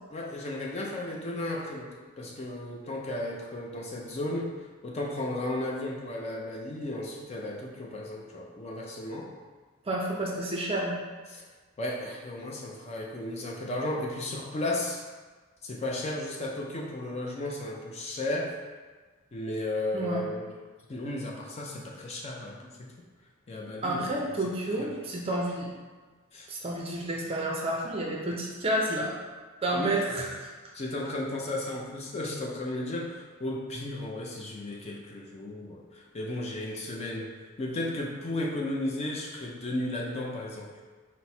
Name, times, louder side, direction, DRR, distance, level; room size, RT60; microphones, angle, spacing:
voice 1, 0.1-4.5 4.8-9.3 11.3-11.4 11.8-15.0 15.6-18.6 19.3-20.5 20.9-22.9 23.5-24.3 24.8-25.0 26.3-26.5 29.7-29.9 30.7-40.8, left 1 dB, 30° left, -1 dB, 0.4 m, -34 dB
voice 2, 9.9-11.0 19.9-20.2 23.8-25.7 26.5-29.2 29.6-30.5, right 1 dB, 25° right, -1 dB, 0.5 m, -30 dB
4.4 x 2.1 x 4.1 m, 1.4 s
head